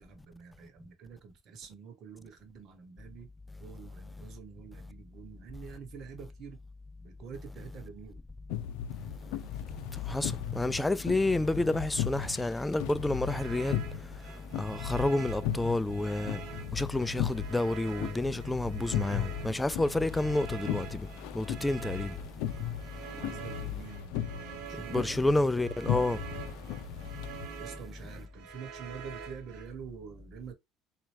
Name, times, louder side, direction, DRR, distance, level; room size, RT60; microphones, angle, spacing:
voice 1, 0.0-3.3 3.6-6.6 7.0-8.2 23.1-25.3 27.6-30.5, right 6 dB, 55° right, 1.2 m, -47 dB
sound 1, 8.5-27.5, left 11 dB, 80° left, 0.5 m, -37 dB
voice 2, 10.1-13.8 14.6-16.4 16.7-21.0 21.3-22.1 24.9-26.2, left 2 dB, 10° left, 0.3 m, -29 dB
sound 2, 13.2-29.7, right 8 dB, 75° right, 0.9 m, -47 dB
4.2 x 2.4 x 3.3 m
supercardioid pair, 95°, 0 cm